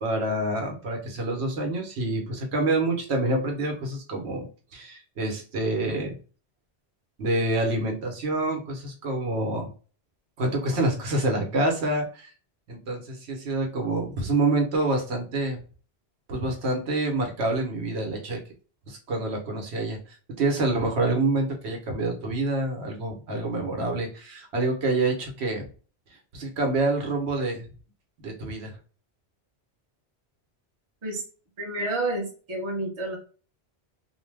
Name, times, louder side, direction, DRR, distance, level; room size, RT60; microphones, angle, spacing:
voice 1, 0.0-6.2 7.2-9.7 10.4-12.3 12.7-15.6 16.3-18.4 18.9-25.7 26.3-27.7 28.2-28.8, right 2 dB, 80° right, 2 dB, 1.1 m, -27 dB
voice 2, 31.6-33.2, right 2 dB, 30° right, 0 dB, 0.7 m, -29 dB
2.7 x 2.0 x 3.2 m, 0.37 s
omnidirectional pair, 1.1 m